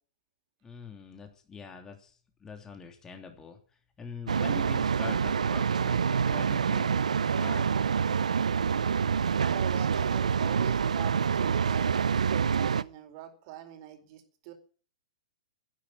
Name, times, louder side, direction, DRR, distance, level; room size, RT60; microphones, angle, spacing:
voice 1, 0.6-2.1 2.4-3.6 4.0-7.0 7.2-7.7, left 5 dB, 15° left, 5 dB, 3.1 m, -44 dB
sound 1, 4.3-12.8, right 6 dB, 85° right, 0.6 m, -27 dB
voice 2, 9.4-14.5, right 11 dB, 45° right, 6 dB, 4.3 m, -43 dB
12.0 x 10.5 x 9.6 m, 0.42 s
hypercardioid pair, 130°, 4 cm